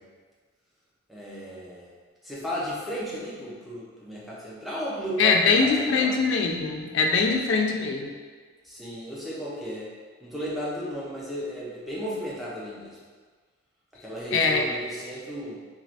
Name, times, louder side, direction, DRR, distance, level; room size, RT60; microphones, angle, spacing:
voice 1, 1.1-1.9 2.2-6.1 7.2-7.3 8.6-9.9 10.2-13.0 14.0-15.6, equal, ahead, -8 dB, 0.5 m, -34 dB
voice 2, 5.2-8.1 14.3-14.6, left 4 dB, 60° left, 2 dB, 0.3 m, -22 dB
3.1 x 2.5 x 2.7 m, 1.5 s
head